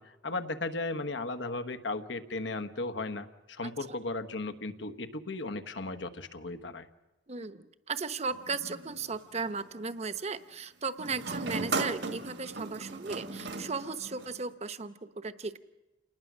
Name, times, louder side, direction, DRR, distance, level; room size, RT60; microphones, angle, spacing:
voice 1, 0.0-6.9, left 2 dB, 80° left, 9 dB, 1.3 m, -36 dB
voice 2, 7.3-15.6, right 4 dB, 35° right, 11 dB, 0.9 m, -36 dB
sound 1, 8.3-9.6 11.0-14.5, right 3 dB, 65° right, 1.6 m, -37 dB
28.5 x 19.5 x 6.3 m, 1.1 s
head